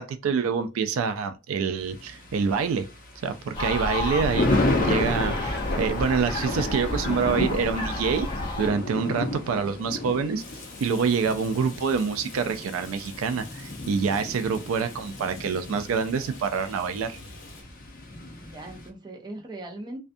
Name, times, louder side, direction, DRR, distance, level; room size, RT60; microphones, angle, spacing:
voice 1, 0.0-2.9 3.2-4.5 4.8-8.3 8.6-10.4 10.8-17.2, right 5 dB, 85° right, 0.3 m, -26 dB
Thunder, 1.8-18.9, left 2 dB, 45° left, 0.6 m, -32 dB
sound 1, 3.5-8.7, left 1 dB, 25° left, 0.9 m, -31 dB
Rain, 10.4-17.6, left 3 dB, 70° left, 0.9 m, -46 dB
voice 2, 18.4-20.0, right 2 dB, 20° right, 0.5 m, -40 dB
2.5 x 2.2 x 2.5 m
head